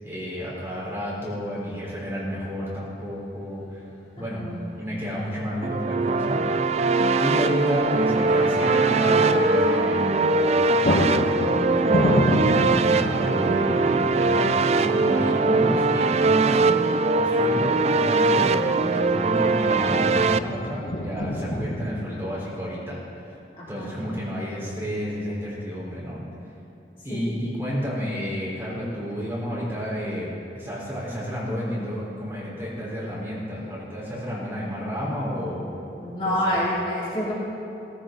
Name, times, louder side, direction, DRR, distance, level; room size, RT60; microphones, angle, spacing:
voice 1, 0.0-3.8 4.2-4.4 4.8-6.4 7.2-11.2 11.6-16.6 17.1-23.0 23.7-26.2 27.0-36.0 36.2-36.6, equal, 15° right, -7 dB, 4.2 m, -31 dB
sound 1, 3.9-4.0 5.6-6.0 6.3-6.4 10.1-10.3 10.5-21.9, equal, 55° left, 1.4 m, -29 dB
voice 2, 4.2-4.6 23.6-24.0 27.1-27.2 36.0-37.3, equal, 30° left, -8 dB, 2.7 m, -28 dB
sound 2, 5.6-20.4, right 3 dB, 35° right, 0.3 m, -21 dB
sound 3, 7.8-10.1, left 2 dB, 5° left, 3.4 m, -33 dB
17.5 x 15.0 x 3.9 m, 2.7 s
head